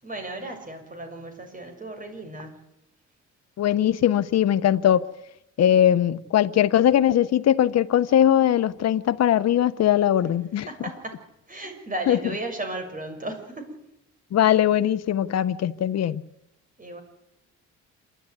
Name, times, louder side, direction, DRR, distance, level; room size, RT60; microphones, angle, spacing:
voice 1, 0.0-2.6 10.7-11.1 11.5-13.8 16.8-17.0, right 2 dB, 25° right, 6.5 m, -35 dB
voice 2, 3.6-5.1 5.6-10.7 12.1-12.2 14.3-16.2, left 10 dB, 60° left, 1.0 m, -20 dB
27.0 x 12.5 x 9.6 m
cardioid pair, 90°, 30 cm